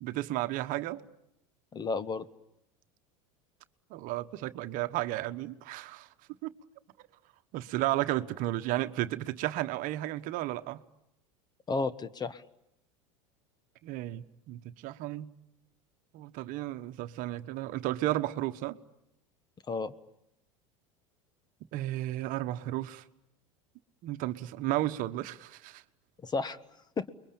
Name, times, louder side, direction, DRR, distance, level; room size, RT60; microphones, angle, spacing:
voice 1, 0.0-1.0 3.9-6.1 6.4-6.5 7.5-10.8 13.8-15.3 16.1-18.8 21.7-23.0 24.0-25.8, right 15 dB, 55° right, 1.2 m, -33 dB
voice 2, 1.7-2.3 11.7-12.4 19.7-19.9 26.2-26.6 27.0-27.1, left 4 dB, 25° left, 1.2 m, -32 dB
29.5 x 22.5 x 8.7 m
hypercardioid pair, 95°, 17 cm